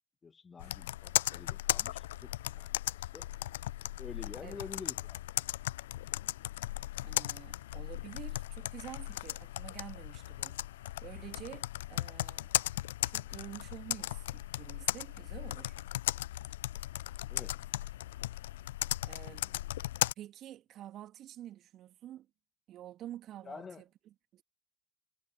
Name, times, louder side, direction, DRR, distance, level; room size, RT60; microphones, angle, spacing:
voice 1, 0.2-3.3 4.0-5.2 17.3-17.6 19.4-19.7 23.4-23.8, left 5 dB, 30° left, 1.4 m, -48 dB
Computer keyboard, 0.6-20.1, left 15 dB, 75° left, 0.7 m, -37 dB
voice 2, 7.0-12.6 13.1-15.8 19.0-19.4 20.2-22.3 22.7-23.8 24.3-24.4, right 12 dB, 55° right, 2.7 m, -48 dB
figure-of-eight pair, 60°, 0 cm